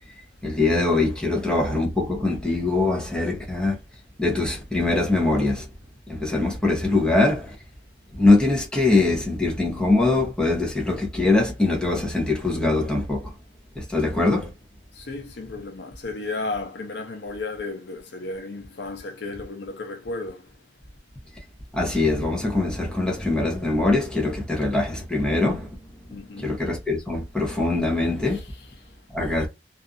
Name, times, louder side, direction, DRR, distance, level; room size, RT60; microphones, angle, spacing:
voice 1, 0.4-3.8 4.2-5.7 6.1-7.6 8.2-13.3 13.8-14.5 21.7-25.9 26.4-28.4 29.1-29.5, left 2 dB, 5° left, 0.8 m, -22 dB
voice 2, 14.9-20.5 26.1-26.5, left 3 dB, 80° left, 0.6 m, -33 dB
2.6 x 2.4 x 2.4 m
head